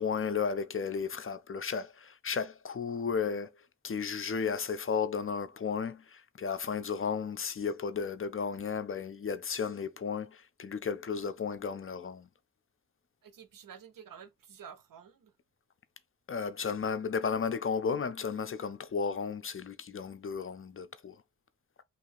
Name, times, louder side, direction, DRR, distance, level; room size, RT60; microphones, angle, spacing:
voice 1, 0.0-3.5 3.8-12.3 16.3-21.2, left 6 dB, 40° left, 0.5 m, -34 dB
voice 2, 13.2-15.3, right 7 dB, 75° right, 0.7 m, -50 dB
3.0 x 2.7 x 4.0 m
cardioid pair, 65°, 33 cm